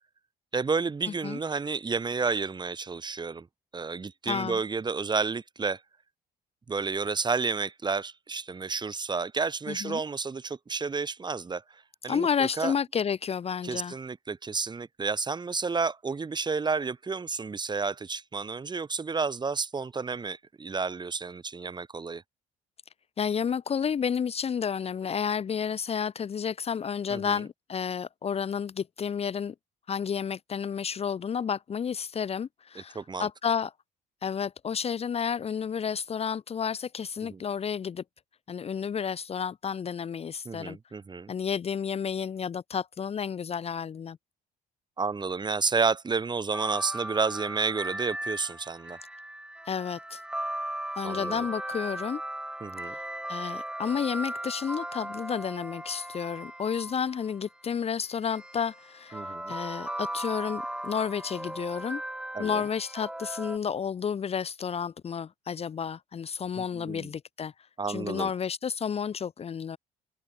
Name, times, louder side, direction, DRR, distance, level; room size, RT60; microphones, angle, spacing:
voice 1, 0.5-3.5 3.7-5.8 6.7-11.6 12.0-12.7 13.6-22.2 27.1-27.4 32.8-33.3 37.2-37.4 40.5-41.3 45.0-49.0 51.0-51.5 52.6-53.0 59.1-59.5 62.3-62.6 66.6-67.1 67.8-68.3, right 4 dB, 25° right, 5.3 m, -31 dB
voice 2, 4.3-4.6 9.7-10.0 12.1-13.9 23.2-29.5 29.9-33.7 34.2-38.0 38.5-40.8 41.3-44.2 49.7-50.2 51.0-52.2 52.8-53.0 53.3-62.0 62.4-67.5 67.9-69.8, left 7 dB, 35° left, 1.3 m, -31 dB
sound 1, 46.5-57.4 58.3-63.6, right 1 dB, 5° right, 3.1 m, -37 dB
cardioid pair, 110°, 17 cm